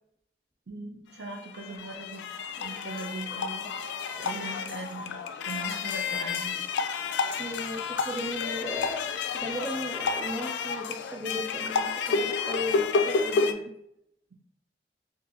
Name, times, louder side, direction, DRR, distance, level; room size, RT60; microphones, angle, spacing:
voice 1, 0.7-2.3 2.6-3.7 4.2-6.6, right 2 dB, 70° right, 1 dB, 0.7 m, -40 dB
sound 1, 1.2-13.5, left 5 dB, 80° left, 0.3 m, -30 dB
voice 2, 7.3-13.7, left 1 dB, 10° right, -2 dB, 0.3 m, -36 dB
4.4 x 2.6 x 2.6 m, 0.77 s
head